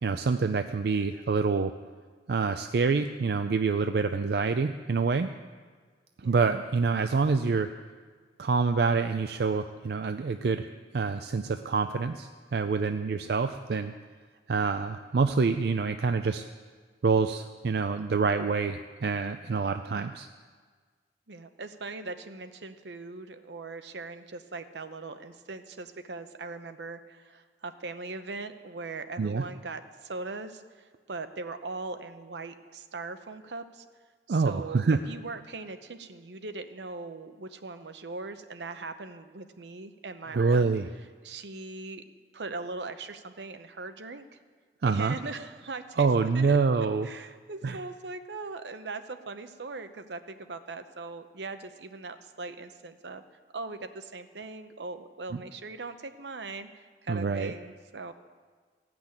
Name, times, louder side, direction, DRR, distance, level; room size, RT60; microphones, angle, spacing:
voice 1, 0.0-1.7 2.3-5.3 6.2-7.7 8.4-13.9 14.5-16.4 17.0-20.3 29.2-29.4 34.3-35.0 40.3-40.9 44.8-45.2 46.0-47.1 47.6-47.8 55.3-55.4 57.1-57.5, right 4 dB, 60° right, 8 dB, 0.4 m, -26 dB
voice 2, 19.4-19.8 21.3-33.8 34.3-40.6 41.2-42.0 42.3-44.4 44.8-46.1 46.3-46.6 47.0-53.2 53.5-58.1, right 3 dB, 80° right, 9 dB, 0.8 m, -40 dB
15.5 x 6.1 x 8.7 m, 1.5 s
head